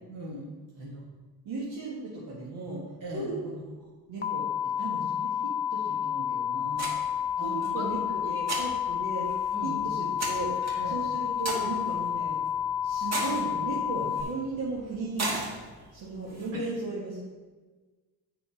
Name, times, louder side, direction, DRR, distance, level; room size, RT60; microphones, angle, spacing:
voice 1, 0.1-0.5 3.0-3.3 7.4-7.9 8.2-8.4 9.5-9.8 10.7-11.0 16.5-16.7, equal, 60° right, -2 dB, 2.7 m, -39 dB
voice 2, 1.5-2.8 3.1-4.5 4.8-6.9 7.4-12.4 12.8-15.6 15.9-17.2, right 3 dB, 80° right, -6 dB, 1.7 m, -36 dB
sound 1, 4.2-14.2, left 9 dB, 30° left, 0.5 m, -30 dB
sound 2, 6.7-16.5, right 2 dB, 45° right, 1.8 m, -39 dB
7.3 x 5.3 x 4.9 m, 1.3 s
cardioid pair, 110°, 37 cm